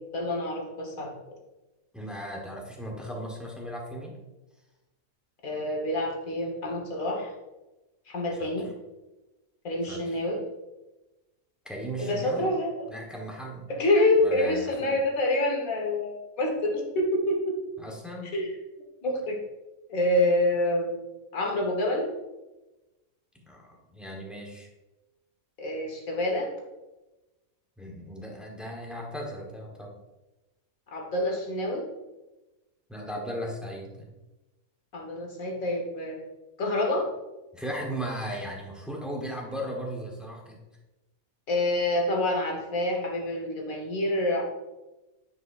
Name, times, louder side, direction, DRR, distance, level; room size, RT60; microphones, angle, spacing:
voice 1, 0.1-1.1 5.4-7.3 8.1-8.7 9.6-10.4 12.0-12.7 13.7-17.5 18.3-18.5 19.0-19.4 19.9-21.1 21.3-22.1 25.6-26.5 30.9-31.8 34.9-36.1 36.6-37.1 41.5-44.4, left 1 dB, 75° left, 0 dB, 1.8 m, -27 dB
voice 2, 1.9-4.2 8.4-8.5 9.9-10.0 11.6-12.5 12.9-13.7 14.2-15.0 17.8-18.4 23.3-24.7 27.8-29.9 32.9-34.1 37.5-40.6, equal, ahead, -1 dB, 1.0 m, -37 dB
9.3 x 5.0 x 2.5 m, 1.1 s
omnidirectional pair, 1.5 m